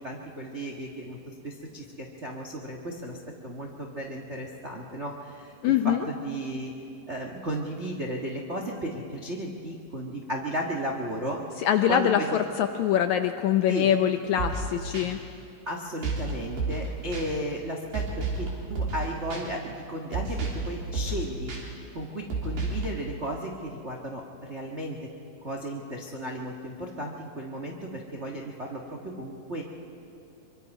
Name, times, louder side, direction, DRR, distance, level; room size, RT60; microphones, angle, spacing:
voice 1, 0.0-3.2 3.4-5.5 5.8-6.7 7.1-11.4 11.9-12.3 13.7-13.9 15.7-21.5 21.9-25.0 25.4-29.6, right 1 dB, 55° right, 0 dB, 0.7 m, -34 dB
voice 2, 5.6-6.1 11.6-15.2, left 10 dB, 80° left, 8 dB, 1.7 m, -24 dB
sound 1, 14.4-14.7 14.9-15.1 16.0-16.3 16.6-16.9 17.1-17.2 17.9-18.5 18.8-19.0 19.3-19.4 20.1-20.7 20.9-21.2 21.5-21.6 22.3-22.9, right 3 dB, 80° right, 4.8 m, -30 dB
24.5 x 24.5 x 5.4 m, 2.7 s
omnidirectional pair, 3.9 m